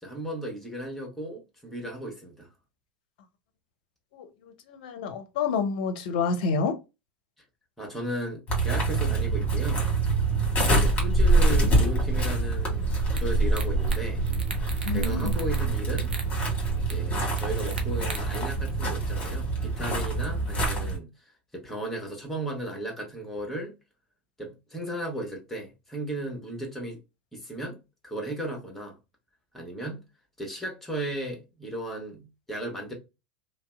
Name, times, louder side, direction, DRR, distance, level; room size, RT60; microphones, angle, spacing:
voice 1, 0.0-2.5 7.8-9.9 10.7-14.2 14.9-16.1 16.7-21.1 21.5-23.7 24.4-27.0 27.3-27.8 28.0-29.0 29.5-30.0 30.4-32.9, right 1 dB, 5° left, 1.2 m, -35 dB
voice 2, 4.7-6.8 14.9-15.3, left 5 dB, 60° left, 0.5 m, -28 dB
sound 1, 8.5-21.0, right 2 dB, 25° left, 1.3 m, -25 dB
sound 2, 13.2-13.3 13.5-14.0 14.3-15.6 15.9-16.3 16.9-17.0 17.4-18.4, right 4 dB, 85° right, 0.5 m, -38 dB
2.6 x 2.1 x 2.2 m
hypercardioid pair, 85°, 5 cm